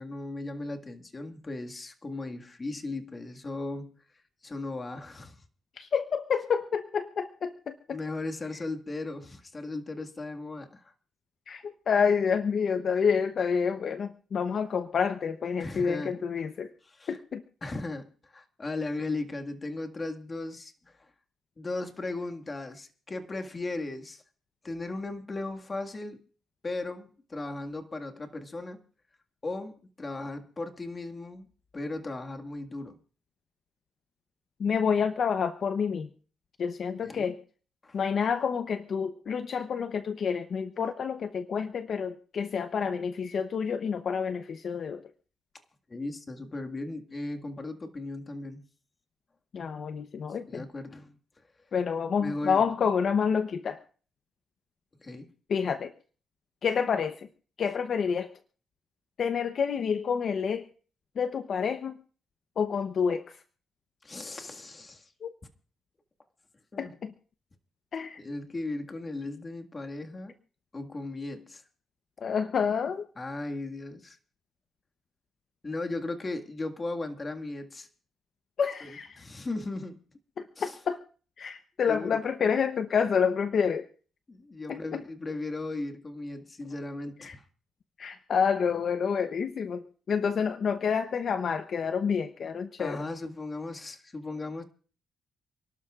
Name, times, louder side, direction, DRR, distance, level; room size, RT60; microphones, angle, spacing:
voice 1, 0.0-4.0 4.4-5.4 7.9-10.9 15.6-16.2 16.8-17.2 17.6-21.1 21.6-24.2 24.6-26.2 26.6-28.8 29.4-31.5 31.7-33.0 37.0-37.3 37.8-38.0 45.9-48.6 50.5-51.2 52.2-52.7 55.0-55.3 64.0-65.1 66.7-66.9 68.2-70.3 70.7-71.6 73.2-74.2 75.6-77.9 78.8-80.0 80.6-80.8 81.9-82.2 84.3-87.4 92.8-94.6, left 2 dB, 30° left, 1.9 m, -37 dB
voice 2, 5.8-7.7 11.5-16.7 17.1-17.4 34.6-36.1 36.6-37.4 37.9-45.0 49.5-50.6 51.7-53.8 55.5-55.9 56.6-57.3 57.6-58.3 59.2-60.6 61.2-62.0 62.6-63.4 65.2-65.3 66.8-67.1 67.9-68.2 72.2-73.1 78.6-79.2 80.6-81.0 81.4-83.9 84.7-85.0 87.2-87.4 88.0-93.0, left 6 dB, 55° left, 0.8 m, -28 dB
29.0 x 12.0 x 2.5 m
cardioid pair, 90°, 0 cm